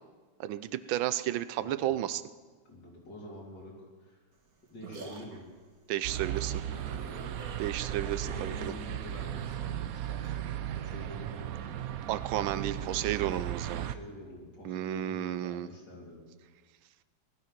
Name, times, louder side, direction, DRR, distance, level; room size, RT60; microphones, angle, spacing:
voice 1, 0.4-2.2 5.9-6.5 7.6-8.7 12.1-13.9 14.6-15.7, right 12 dB, 90° right, 13 dB, 1.5 m, -32 dB
voice 2, 1.6-1.9 2.6-4.2 4.7-5.5 6.2-7.5 8.0-12.1 12.5-12.9 13.7-16.2, left 1 dB, 60° left, -2 dB, 4.3 m, -47 dB
sound 1, 4.3-10.4, right 3 dB, 50° right, 2.2 m, -50 dB
sound 2, 6.0-14.0, right 11 dB, 65° right, 0.9 m, -36 dB
19.0 x 12.5 x 5.9 m, 1.4 s
omnidirectional pair, 2.1 m